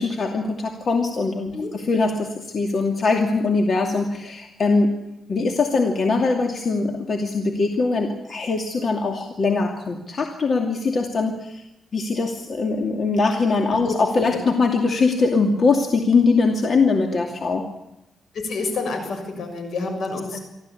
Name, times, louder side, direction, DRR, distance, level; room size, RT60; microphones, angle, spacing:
voice 1, 0.0-5.0 5.3-11.6 11.9-17.7 20.3-20.4, left 4 dB, 50° left, 3 dB, 2.6 m, -22 dB
voice 2, 18.3-20.4, left 3 dB, 75° left, 6 dB, 6.8 m, -28 dB
24.5 x 15.0 x 8.5 m, 0.96 s
cardioid pair, 95°, 0 cm